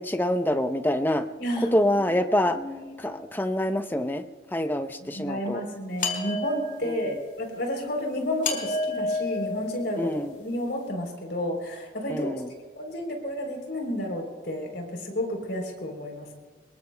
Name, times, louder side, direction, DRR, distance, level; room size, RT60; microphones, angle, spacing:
voice 1, 0.0-1.3 1.7-2.6 3.0-4.2 4.5-5.6 6.8-7.0 10.0-10.3 12.1-12.5, left 1 dB, 10° left, 8 dB, 0.6 m, -26 dB
voice 2, 1.4-2.0 2.4-3.0 5.0-10.1 10.4-12.4 12.8-16.3, left 1 dB, 65° left, 2 dB, 3.5 m, -31 dB
sound 1, 6.0-7.1 8.4-10.3, left 2 dB, 45° left, 2.3 m, -30 dB
25.0 x 21.5 x 2.2 m, 1.4 s
head